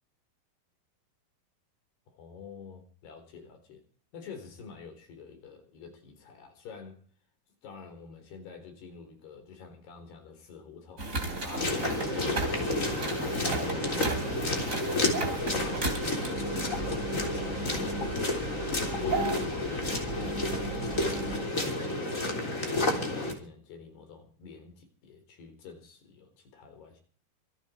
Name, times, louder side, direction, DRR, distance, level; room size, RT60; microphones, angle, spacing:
voice 1, 2.1-3.8 4.1-7.0 7.6-15.0 15.4-16.5 17.1-18.6 18.9-22.3 22.7-27.0, left 5 dB, 90° left, 6 dB, 6.1 m, -47 dB
sound 1, 11.0-21.4, right 3 dB, 20° right, 3.5 m, -35 dB
sound 2, 11.1-20.0, right 5 dB, 85° right, 5.2 m, -48 dB
sound 3, 11.6-23.3, left 2 dB, 20° left, 3.6 m, -31 dB
26.5 x 9.1 x 4.5 m, 0.43 s
omnidirectional pair, 4.5 m